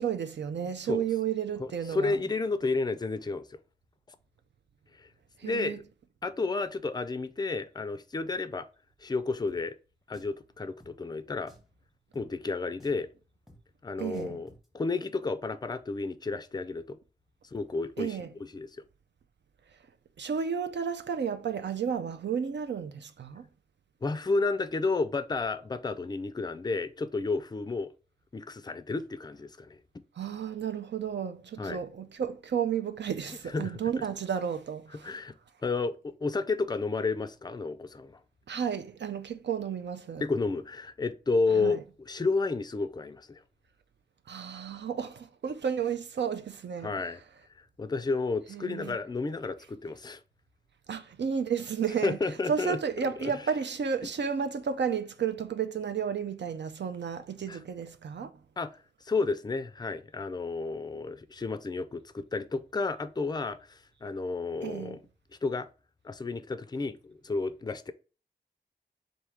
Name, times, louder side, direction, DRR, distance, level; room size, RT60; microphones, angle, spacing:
voice 1, 0.0-2.2 5.4-5.8 14.0-14.4 18.0-18.3 20.2-23.5 30.2-35.2 38.5-40.2 41.5-41.8 44.3-46.9 48.5-49.0 50.9-52.2 52.5-58.3 64.6-65.0, right 7 dB, 80° right, 0.4 m, -32 dB
voice 2, 1.6-3.5 5.0-5.1 5.4-5.8 6.2-8.7 9.0-9.7 10.1-11.5 12.1-13.1 13.8-14.5 14.7-17.0 17.5-18.2 18.5-18.7 24.0-27.9 28.3-29.8 31.6-31.8 33.5-33.8 35.0-35.3 35.6-38.2 40.2-43.4 46.8-47.2 47.8-50.2 52.0-52.8 53.2-53.3 57.5-57.6 58.6-58.7 59.1-65.0 65.4-65.7 66.0-67.9, left 3 dB, 25° left, 0.3 m, -31 dB
Drum, 9.5-9.6 10.1-10.4 10.8-10.9 11.5-11.7 12.1-12.3 12.8-13.1 13.5-13.6 14.1-14.7, equal, ahead, 0.8 m, -56 dB
3.5 x 2.6 x 4.5 m
wide cardioid pair, 85°, 18 cm